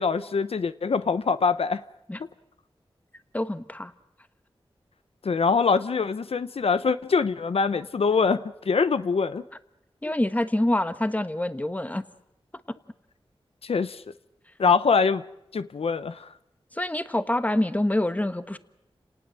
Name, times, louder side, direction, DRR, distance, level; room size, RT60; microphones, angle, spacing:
voice 1, 0.0-1.8 5.2-9.4 10.0-10.1 13.6-14.0 14.6-15.2 15.5-16.3, left 5 dB, 85° left, 13 dB, 0.9 m, -24 dB
voice 2, 3.3-3.9 10.0-12.0 12.7-12.8 16.7-18.6, left 1 dB, 15° left, 11 dB, 1.3 m, -26 dB
30.0 x 19.0 x 7.7 m, 0.88 s
wide cardioid pair, 85°, 10 cm